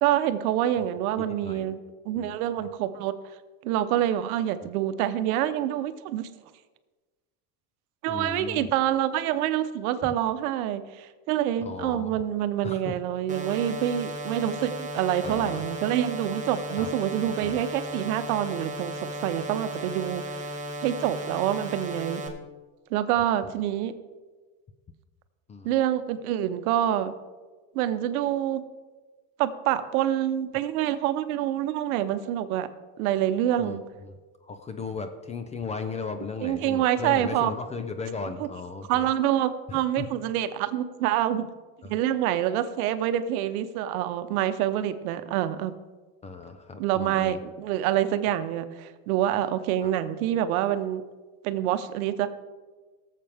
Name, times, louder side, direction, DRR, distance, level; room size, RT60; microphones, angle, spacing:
voice 1, 0.0-1.8 2.1-3.1 3.6-6.3 8.0-20.4 20.8-22.2 22.9-23.9 25.6-27.1 27.7-28.6 29.4-32.7 33.0-33.8 36.4-37.5 38.9-41.5 41.9-45.8 46.8-51.0 51.4-52.3, right 11 dB, 75° right, 11 dB, 0.9 m, -26 dB
voice 2, 1.2-1.7 2.2-2.7 4.6-4.7 8.1-8.7 10.0-10.1 11.6-12.1 12.6-13.0 15.2-15.7 16.8-16.9 17.4-17.6 20.0-20.1 23.2-23.5 25.5-25.7 33.6-34.1 34.4-39.1 39.7-40.1 41.8-42.0 46.2-47.4 49.8-49.9, left 4 dB, 15° left, 8 dB, 0.4 m, -37 dB
sound 1, 13.3-22.3, equal, 15° right, 1.2 m, -35 dB
17.5 x 7.5 x 3.5 m, 1.3 s
supercardioid pair, 135°, 44 cm